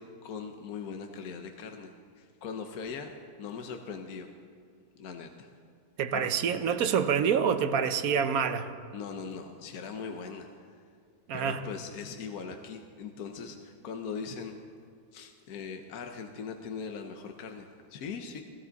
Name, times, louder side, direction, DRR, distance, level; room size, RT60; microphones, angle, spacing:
voice 1, 0.0-3.1 3.4-4.3 5.0-5.5 6.1-6.3 8.9-10.5 11.3-14.6 15.1-18.4, left 5 dB, 70° left, 5 dB, 1.3 m, -40 dB
voice 2, 6.0-8.7 11.3-11.6, right 7 dB, 70° right, 9 dB, 1.2 m, -27 dB
17.5 x 16.0 x 4.0 m, 2.3 s
omnidirectional pair, 1.6 m